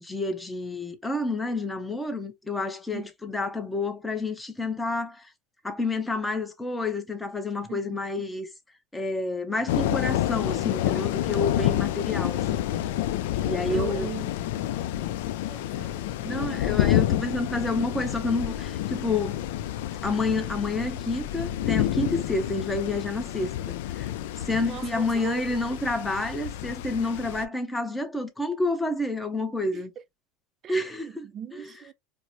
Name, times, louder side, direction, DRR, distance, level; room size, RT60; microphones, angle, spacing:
voice 1, 0.0-5.3 5.6-8.5 8.9-12.6 13.4-14.1 16.2-19.4 20.0-23.5 23.9-24.1 24.4-29.9 30.7-31.3 31.5-31.7, left 2 dB, 5° left, 0.6 m, -29 dB
sound 1, 9.7-27.5, left 12 dB, 80° left, 0.4 m, -29 dB
voice 2, 13.7-14.3 14.6-14.7 15.5-16.5 24.6-25.4 25.7-25.8 29.7-29.8 30.6-30.8 31.2-31.9, right 10 dB, 30° right, 0.3 m, -39 dB
4.6 x 2.0 x 2.6 m
supercardioid pair, 160°, 0 cm